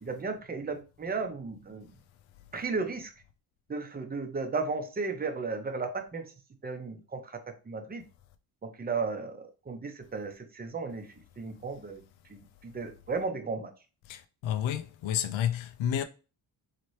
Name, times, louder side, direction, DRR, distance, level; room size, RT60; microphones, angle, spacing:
voice 1, 0.0-1.9 2.5-3.1 3.7-6.3 6.6-8.0 8.6-12.0 12.3-13.7, right 4 dB, 20° right, 0.7 m, -35 dB
voice 2, 14.1-16.0, left 10 dB, 70° left, 0.5 m, -30 dB
4.1 x 2.9 x 3.1 m
cardioid pair, 105°, 48 cm